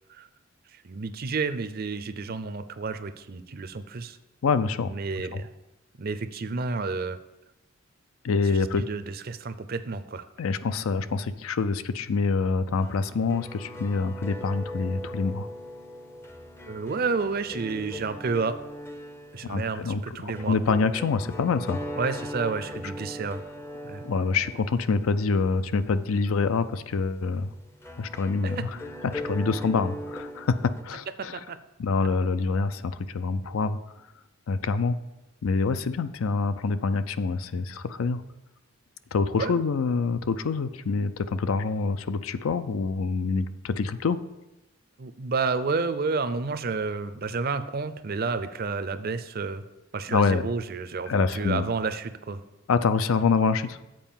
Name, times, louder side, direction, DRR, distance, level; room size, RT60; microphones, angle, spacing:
voice 1, 0.7-4.2 4.9-5.5 6.0-7.2 8.8-10.3 16.6-18.6 19.3-20.6 22.0-23.4 23.8-24.0 31.5-31.6 39.4-39.6 45.0-49.6 49.9-52.4, right 4 dB, 45° right, 11 dB, 0.5 m, -30 dB
voice 2, 4.4-4.9 5.3-5.4 8.2-8.8 10.4-15.5 19.4-21.9 24.0-27.5 28.0-28.7 29.0-31.4 31.8-33.8 34.5-35.0 35.4-38.2 39.1-44.2 50.1-50.5 51.1-51.7 52.7-53.8, left 4 dB, 80° left, 13 dB, 0.5 m, -26 dB
sound 1, 12.8-30.8, equal, 10° left, 0.5 m, -40 dB
7.7 x 4.6 x 7.1 m, 0.97 s
head